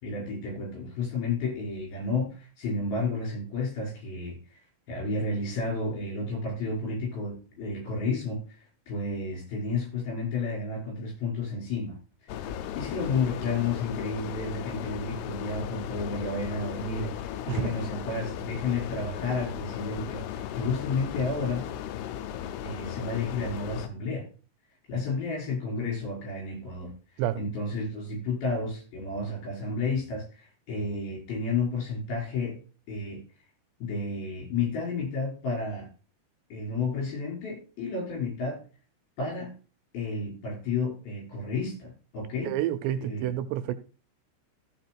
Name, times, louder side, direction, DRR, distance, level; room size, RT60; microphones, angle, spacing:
voice 1, 0.0-4.6 4.9-8.6 8.9-12.0 12.2-21.6 22.6-24.3 24.9-26.9 27.4-32.6 32.9-33.2 33.8-35.9 36.5-38.6 39.2-39.5 39.9-42.5 43.0-43.3, left 3 dB, 55° left, -2 dB, 7.0 m, -31 dB
sound 1, 12.3-23.9, left 10 dB, 80° left, 2.5 m, -36 dB
voice 2, 42.4-43.7, right 12 dB, 80° right, 10 dB, 2.7 m, -29 dB
14.5 x 5.2 x 4.6 m, 0.36 s
omnidirectional pair, 5.2 m